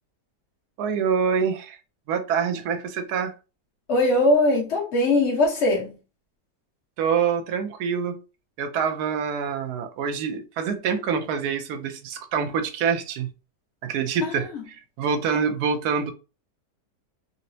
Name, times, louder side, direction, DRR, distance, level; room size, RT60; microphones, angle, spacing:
voice 1, 0.8-1.8 2.1-3.3 7.0-8.2 8.6-13.3 13.8-16.1, right 6 dB, 75° right, 1.0 m, -26 dB
voice 2, 3.9-6.0 14.2-14.3, left 2 dB, 45° left, 1.3 m, -21 dB
3.9 x 2.0 x 2.6 m
omnidirectional pair, 1.8 m